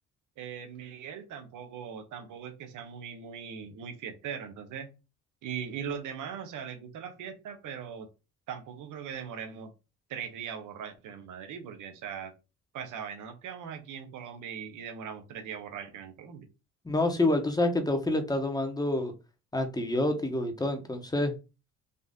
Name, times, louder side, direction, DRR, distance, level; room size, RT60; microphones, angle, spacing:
voice 1, 0.4-4.9 5.4-8.1 8.5-9.7 10.1-12.3 12.7-16.5, right 7 dB, 85° right, 7 dB, 1.1 m, -40 dB
voice 2, 16.8-19.1 19.5-21.3, left 1 dB, 15° left, 5 dB, 1.1 m, -27 dB
4.0 x 2.7 x 3.7 m, 0.29 s
cardioid pair, 90°, 30 cm